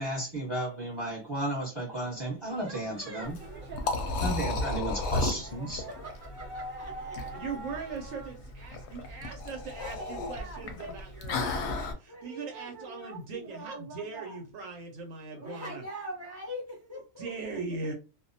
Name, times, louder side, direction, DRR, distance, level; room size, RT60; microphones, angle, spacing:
voice 1, 0.0-3.4 4.2-5.9, right 1 dB, 20° right, -3 dB, 0.8 m, -33 dB
sound 1, 1.9-8.3, right 2 dB, 50° right, 0.8 m, -45 dB
Liquid, 3.2-11.9, left 3 dB, 65° left, 0.8 m, -34 dB
voice 2, 5.8-7.4 7.7-7.8 9.8-11.0 12.1-14.4 15.3-17.9, equal, 20° left, -3 dB, 0.5 m, -43 dB
voice 3, 7.4-15.8 17.2-17.9, right 4 dB, 75° right, 3 dB, 0.9 m, -40 dB
2.3 x 2.1 x 2.6 m, 0.31 s
omnidirectional pair, 1.4 m